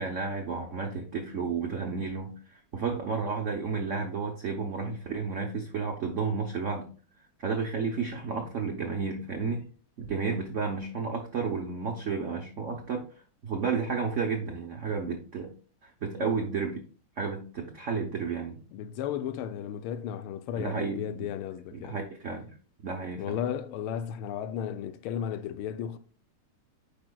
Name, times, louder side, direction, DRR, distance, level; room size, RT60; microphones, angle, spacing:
voice 1, 0.0-6.9 7.4-9.7 10.0-13.0 13.4-15.5 15.8-16.8 17.2-18.6 20.6-21.3 21.7-22.5 22.8-23.4, right 5 dB, 75° right, 0.6 m, -32 dB
voice 2, 18.7-22.0 23.2-26.0, left 9 dB, 80° left, 1.4 m, -34 dB
8.6 x 5.1 x 2.3 m
omnidirectional pair, 2.4 m